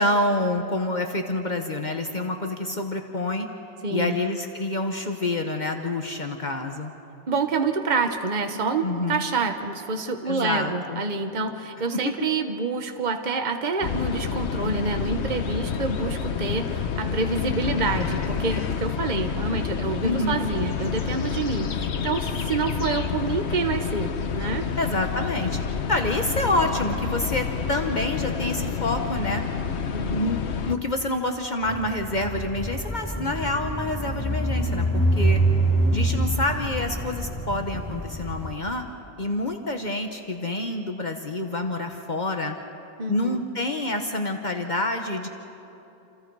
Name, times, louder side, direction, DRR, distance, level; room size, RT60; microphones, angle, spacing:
voice 1, 0.0-3.5 3.9-6.9 8.8-9.2 10.3-11.0 11.9-12.0 20.0-20.4 24.8-25.6 25.9-29.4 30.1-35.4 35.9-38.9 39.2-42.6 43.1-45.3, left 2 dB, 45° left, 4 dB, 1.3 m, -27 dB
voice 2, 3.8-4.2 7.3-24.7 29.9-30.2 43.0-43.4, right 4 dB, 45° right, 6 dB, 1.3 m, -27 dB
sound 1, 13.8-30.8, left 6 dB, 85° left, 1.2 m, -29 dB
sound 2, 31.6-38.5, right 1 dB, 15° left, 3.4 m, -25 dB
28.0 x 28.0 x 4.8 m, 3.0 s
omnidirectional pair, 1.1 m